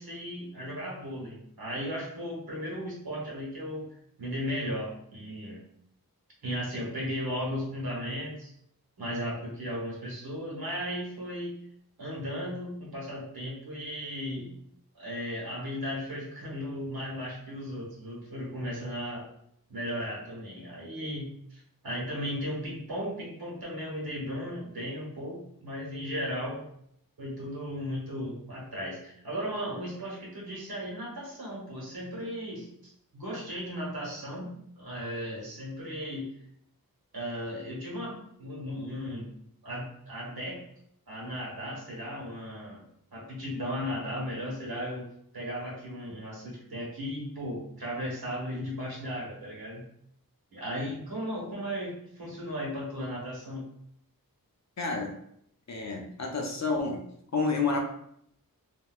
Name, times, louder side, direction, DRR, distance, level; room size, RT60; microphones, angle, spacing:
voice 1, 0.0-3.8 4.2-5.6 6.4-8.5 9.0-11.6 12.0-14.5 14.9-19.3 19.7-26.6 27.2-36.3 37.1-39.3 39.6-40.6 41.1-42.8 43.1-45.1 45.3-49.8 50.5-53.6, equal, 85° right, -4 dB, 1.1 m, -36 dB
voice 2, 54.8-55.1 55.7-57.0 57.3-57.8, left 4 dB, 50° left, 2 dB, 0.6 m, -29 dB
3.4 x 2.2 x 2.3 m, 0.72 s
wide cardioid pair, 75°, 36 cm